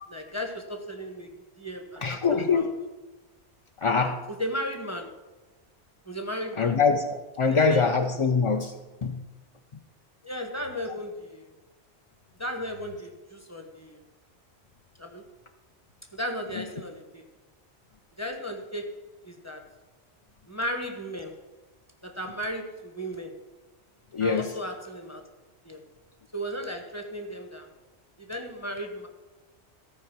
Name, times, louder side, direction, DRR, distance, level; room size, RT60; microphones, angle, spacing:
voice 1, 0.1-2.7 4.4-5.1 6.1-6.8 7.4-7.8 10.2-11.5 12.4-14.0 15.0-15.2 16.1-17.2 18.2-19.7 20.5-21.4 22.0-23.4 24.2-25.2 25.6-25.8 26.3-27.7 28.2-29.1, equal, 15° left, 4 dB, 1.1 m, -35 dB
voice 2, 2.0-2.7 3.8-4.2 6.6-8.8 9.0-9.2 16.5-16.6 24.1-24.5, left 5 dB, 45° left, 5 dB, 0.4 m, -24 dB
14.0 x 4.9 x 6.0 m, 1.2 s
omnidirectional pair, 1.2 m